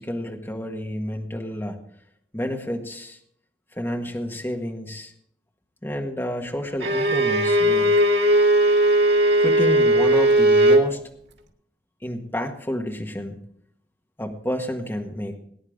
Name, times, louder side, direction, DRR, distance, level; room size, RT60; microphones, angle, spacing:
voice 1, 0.0-1.8 2.3-3.2 3.7-5.1 5.8-7.9 9.4-11.0 12.0-13.4 14.2-15.4, equal, 15° left, 2 dB, 1.6 m, -30 dB
Bowed string instrument, 6.8-10.9, right 1 dB, 75° right, 2.2 m, -18 dB
19.5 x 9.8 x 3.7 m, 0.68 s
head